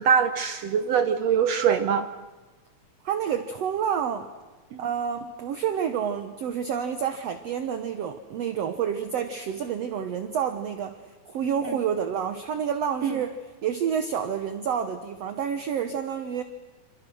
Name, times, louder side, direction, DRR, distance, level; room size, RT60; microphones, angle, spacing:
voice 1, 0.0-2.1 4.7-4.9 11.6-11.8 13.0-13.2, right 7 dB, 80° right, 9 dB, 1.4 m, -23 dB
voice 2, 3.0-4.3 4.8-16.4, right 8 dB, 65° right, 9 dB, 1.7 m, -29 dB
28.0 x 27.5 x 6.3 m, 1.3 s
omnidirectional pair, 4.2 m